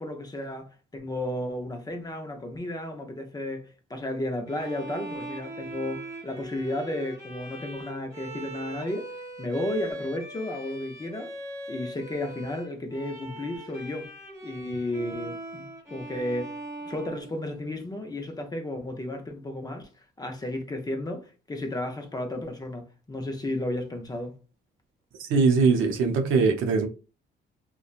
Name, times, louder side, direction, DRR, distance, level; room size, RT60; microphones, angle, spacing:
voice 1, 0.0-9.1 9.4-11.3 11.7-14.1 14.4-16.5 16.8-19.9 20.2-24.3, left 1 dB, 20° left, 0.6 m, -33 dB
Bowed string instrument, 4.5-17.9, right 1 dB, 15° right, 1.0 m, -40 dB
voice 2, 25.2-26.9, right 4 dB, 85° right, 0.6 m, -21 dB
2.8 x 2.2 x 2.4 m
cardioid pair, 90°, 20 cm